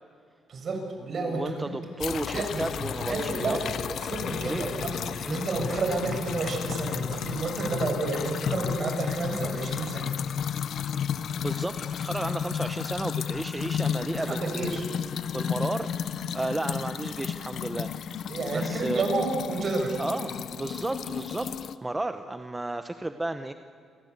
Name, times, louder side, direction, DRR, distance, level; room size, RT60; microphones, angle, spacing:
voice 1, 0.5-1.7 2.3-2.6 3.1-3.6 4.0-10.1 14.3-14.9 18.3-20.0, right 3 dB, 50° right, 3 dB, 7.3 m, -30 dB
voice 2, 1.2-4.0 4.4-4.7 5.2-5.4 11.4-14.8 15.3-15.9 16.3-18.3 18.5-19.1 20.0-21.5 21.8-23.5, right 2 dB, 15° right, 9 dB, 1.1 m, -33 dB
sound 1, 2.0-21.8, left 8 dB, 65° left, 0.9 m, -33 dB
29.5 x 22.5 x 8.4 m, 2.2 s
cardioid pair, 90°, 0 cm